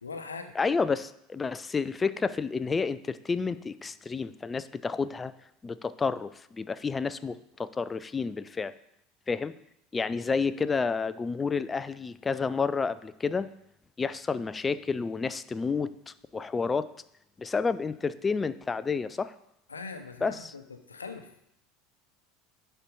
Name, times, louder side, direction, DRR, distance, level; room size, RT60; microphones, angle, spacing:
voice 1, 0.0-0.6 19.7-21.3, left 4 dB, 85° left, 8 dB, 0.8 m, -41 dB
voice 2, 0.6-5.3 5.6-8.7 9.3-9.5 9.9-13.5 14.0-15.9 16.3-16.9 17.4-19.3 20.2-20.5, left 5 dB, 20° left, 15 dB, 0.5 m, -30 dB
11.0 x 4.6 x 5.4 m, 0.78 s
figure-of-eight pair, 75°, 0 cm